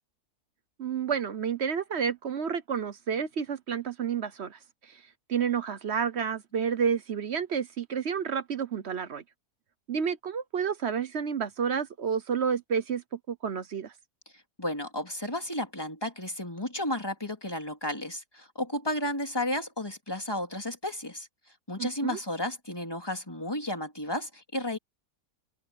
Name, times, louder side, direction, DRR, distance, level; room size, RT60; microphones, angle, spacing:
voice 1, 0.8-5.0 5.3-9.2 9.9-13.9 21.8-22.2, right 7 dB, 50° right, 1.0 m, -30 dB
voice 2, 14.6-21.3 21.7-24.8, left 1 dB, 15° left, 3.6 m, -33 dB
omnidirectional pair, 1.6 m